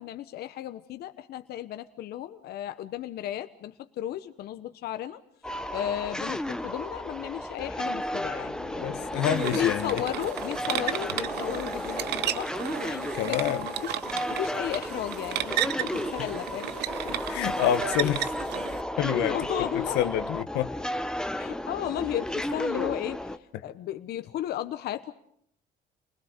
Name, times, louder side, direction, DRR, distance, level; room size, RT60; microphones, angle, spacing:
voice 1, 0.0-5.2 5.7-9.1 9.5-12.1 12.3-12.5 12.8-14.0 14.3-16.8 19.3-20.2 21.3-25.1, left 12 dB, 70° left, 9 dB, 1.1 m, -34 dB
sound 1, 5.4-23.4, left 1 dB, 5° left, 1.0 m, -33 dB
voice 2, 8.8-9.9 13.2-13.6 17.0-18.3 19.0-19.4 19.9-20.7, left 11 dB, 90° left, 9 dB, 1.3 m, -27 dB
sound 2, 9.3-18.8, right 13 dB, 80° right, 0.9 m, -34 dB
28.5 x 20.5 x 6.6 m, 0.69 s
cardioid pair, 110°, 17 cm